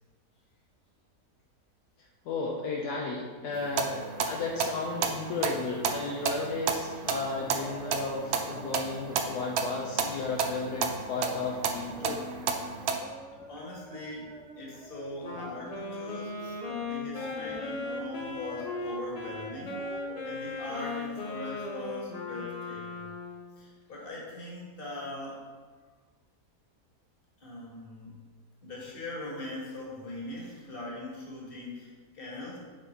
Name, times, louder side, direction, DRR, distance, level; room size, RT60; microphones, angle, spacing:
voice 1, 2.2-12.2, left 3 dB, 75° left, -2 dB, 1.3 m, -34 dB
sound 1, 3.5-13.0, right 5 dB, 70° right, 0.6 m, -32 dB
sound 2, 7.3-9.7 10.0-10.2 10.6-21.6 21.9-22.0, equal, ahead, 0.9 m, -47 dB
voice 2, 13.5-19.8 20.2-22.8 23.6-25.5 27.4-28.2 28.6-32.6, left 2 dB, 35° left, -4 dB, 1.8 m, -41 dB
Wind instrument woodwind instrument, 15.2-23.5, left 3 dB, 55° left, 0.4 m, -37 dB
8.0 x 4.0 x 4.5 m, 1.4 s
omnidirectional pair, 1.7 m